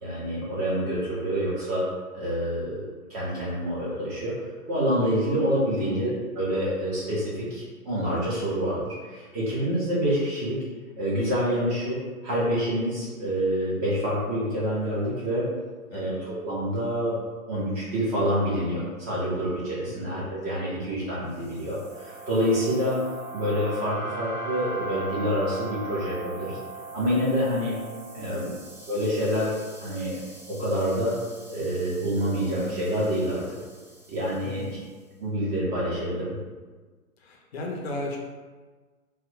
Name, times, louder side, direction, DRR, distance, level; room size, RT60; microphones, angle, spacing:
voice 1, 0.0-1.8 2.1-4.3 4.7-10.6 11.0-12.0 12.2-15.4 15.9-17.1 17.5-23.0 23.3-26.6 26.9-27.8 28.1-28.5 28.9-30.2 30.5-31.1 31.5-33.6 34.1-34.8 35.2-36.4, equal, 20° right, -7 dB, 0.6 m, -27 dB
voice 2, 5.7-6.1 15.9-16.2 19.9-20.1 28.2-28.5 34.4-34.7 37.2-38.2, left 2 dB, 45° left, -1 dB, 0.6 m, -36 dB
sound 1, 21.4-34.7, right 3 dB, 45° right, 1.1 m, -40 dB
3.1 x 2.1 x 3.8 m, 1.4 s
figure-of-eight pair, 120°, 44 cm